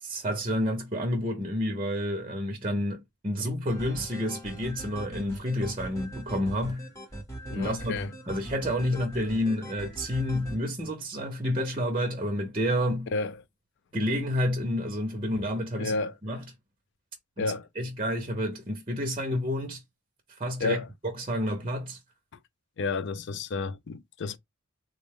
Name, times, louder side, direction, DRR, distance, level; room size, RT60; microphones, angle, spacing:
voice 1, 0.0-6.9 7.6-13.1 13.9-16.0 16.2-16.4 17.4-19.8 20.4-22.0, equal, 25° right, 0.6 m, -30 dB
sound 1, 3.7-10.6, right 1 dB, 15° left, 0.9 m, -40 dB
voice 2, 7.5-8.1 13.1-13.4 15.8-16.1 17.4-17.7 20.6-20.9 22.8-24.4, left 4 dB, 55° left, 0.4 m, -31 dB
3.5 x 2.1 x 3.4 m
head